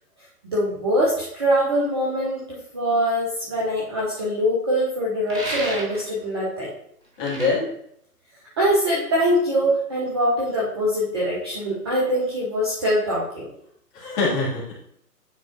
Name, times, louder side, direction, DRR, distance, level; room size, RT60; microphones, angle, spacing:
voice 1, 0.5-6.7 8.6-13.5, equal, 15° right, -7 dB, 0.7 m, -23 dB
sound 1, 5.3-6.1 7.2-7.5, right 1 dB, 85° right, 2.1 m, -31 dB
voice 2, 7.2-7.7 13.9-14.7, left 3 dB, 25° left, -6 dB, 2.4 m, -24 dB
9.0 x 4.7 x 2.7 m, 0.71 s
figure-of-eight pair, 135°, 48 cm